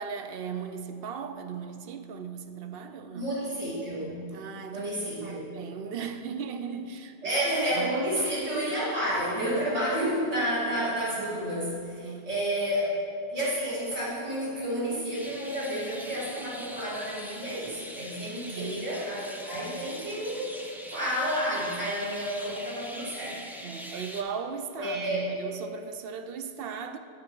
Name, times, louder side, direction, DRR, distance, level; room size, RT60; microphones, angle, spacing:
voice 1, 0.0-3.3 4.3-4.9 5.2-7.4 7.7-8.0 8.5-8.8 12.0-12.3 18.5-18.9 23.6-27.0, right 6 dB, 65° right, 0.7 m, -37 dB
voice 2, 3.1-4.1 4.7-5.5 7.2-12.9 13.3-20.6 20.9-23.4 24.8-25.2, equal, 80° right, 2.7 m, -30 dB
sound 1, 15.1-24.2, equal, 5° right, 0.4 m, -43 dB
7.8 x 6.8 x 5.4 m
omnidirectional pair, 1.1 m